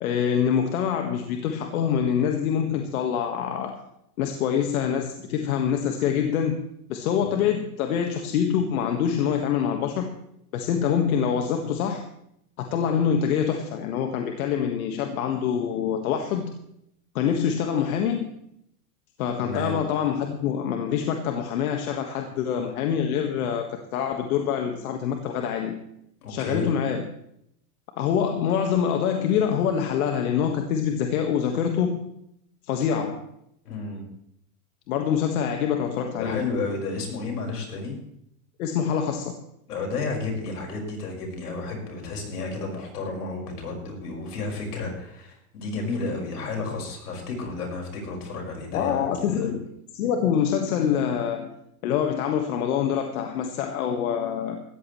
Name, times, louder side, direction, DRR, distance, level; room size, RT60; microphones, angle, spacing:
voice 1, 0.0-3.8 4.2-6.6 6.9-10.1 10.5-12.0 12.6-16.5 17.2-18.3 19.2-25.8 26.3-27.1 28.0-32.0 32.6-33.3 34.9-36.5 38.6-39.4 48.7-49.7 49.9-51.5 51.8-54.6, left 8 dB, 70° left, 4 dB, 1.7 m, -25 dB
voice 2, 19.4-19.8 26.2-26.7 33.7-34.1 36.2-38.0 39.7-49.1 49.4-49.5, left 3 dB, 90° left, 1 dB, 5.5 m, -32 dB
17.5 x 14.0 x 3.2 m, 0.75 s
hypercardioid pair, 125°, 45 cm